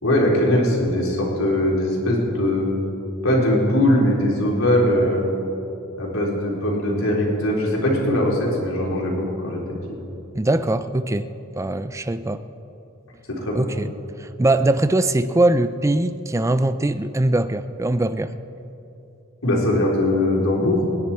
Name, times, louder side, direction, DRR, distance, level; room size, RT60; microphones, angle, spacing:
voice 1, 0.0-2.7 3.2-5.3 6.0-9.6 9.9-10.0 13.3-13.7 19.4-20.8, left 1 dB, 80° left, -3 dB, 3.7 m, -20 dB
voice 2, 10.3-11.3 11.6-12.4 13.5-13.9 14.2-18.3, right 2 dB, 15° right, 12 dB, 0.4 m, -21 dB
26.0 x 10.5 x 4.4 m, 2.9 s
head